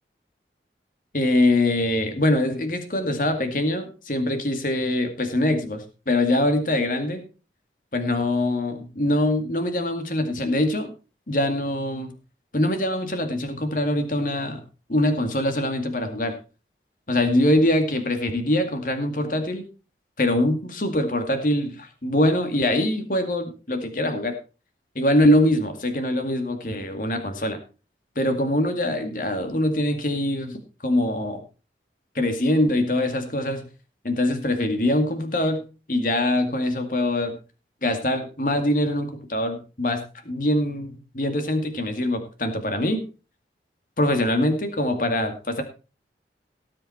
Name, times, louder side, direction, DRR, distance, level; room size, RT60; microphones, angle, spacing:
voice 1, 1.1-7.2 7.9-10.9 11.3-12.1 12.5-14.6 14.9-16.4 17.1-19.6 20.2-24.3 25.0-27.6 28.2-31.4 32.1-33.7 34.0-35.6 35.9-37.4 37.8-43.0 44.0-45.6, left 1 dB, 50° left, 7 dB, 2.2 m, -23 dB
18.0 x 7.6 x 4.3 m, 0.33 s
head